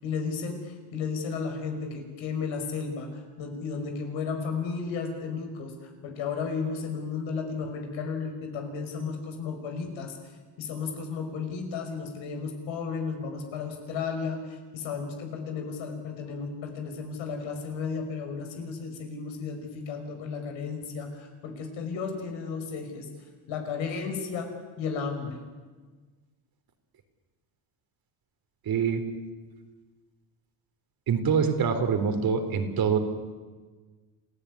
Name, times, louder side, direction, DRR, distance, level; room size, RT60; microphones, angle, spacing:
voice 1, 0.0-10.2 10.6-23.1 23.5-25.4, left 5 dB, 75° left, 5 dB, 5.8 m, -34 dB
voice 2, 28.7-29.1 31.1-33.0, right 6 dB, 50° right, 7 dB, 3.7 m, -25 dB
27.5 x 15.5 x 9.7 m, 1.4 s
cardioid pair, 100°, 46 cm